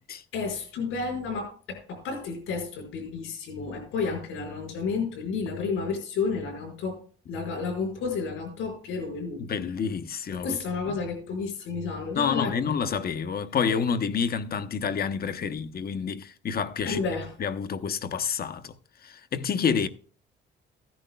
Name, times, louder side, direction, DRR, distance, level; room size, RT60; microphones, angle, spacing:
voice 1, 0.3-7.0 7.3-9.4 10.3-12.7 16.8-17.3, left 4 dB, 90° left, 5.2 m, -31 dB
voice 2, 9.4-10.6 12.2-17.0 17.4-18.7 19.0-19.9, left 6 dB, 50° left, 0.8 m, -28 dB
15.5 x 10.5 x 2.3 m
cardioid pair, 90°, 20 cm